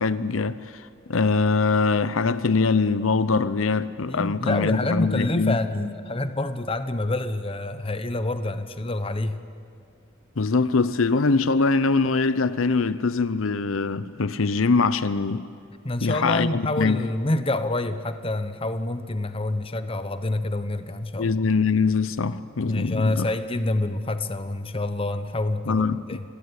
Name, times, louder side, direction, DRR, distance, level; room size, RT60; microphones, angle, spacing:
voice 1, 0.0-5.6 10.4-15.4 16.0-17.0 21.2-23.3 25.7-26.0, left 4 dB, 80° left, 0.7 m, -23 dB
voice 2, 4.1-9.4 15.8-21.4 22.6-26.2, left 2 dB, 25° left, 1.0 m, -27 dB
28.0 x 17.0 x 9.7 m
head